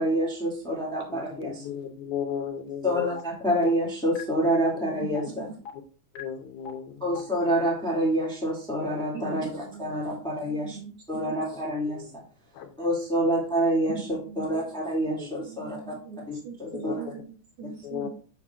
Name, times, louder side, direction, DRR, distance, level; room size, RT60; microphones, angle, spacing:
voice 1, 0.0-1.6 2.8-5.4 7.0-10.8 11.1-12.0 12.8-14.1 14.3-15.9 16.3-17.0, equal, ahead, -3 dB, 1.6 m, -27 dB
voice 2, 1.1-3.2 5.2-5.3 6.1-7.2 11.9-12.2 12.5-12.8 15.2-15.4 16.9-17.0 17.8-18.1, left 8 dB, 85° left, 7 dB, 2.3 m, -35 dB
sound 1, 3.2-3.3 3.7-3.8 4.2-4.3 4.7-4.8 5.2-5.3 5.7-5.8 6.2-6.3 6.7-6.8 7.2-7.3 7.7-7.8, left 7 dB, 65° left, 2.0 m, -38 dB
voice 3, 5.3-5.6 9.1-11.4 13.9-14.7 15.4-18.1, right 5 dB, 65° right, 2 dB, 1.8 m, -41 dB
6.9 x 6.4 x 2.4 m, 0.39 s
omnidirectional pair, 3.4 m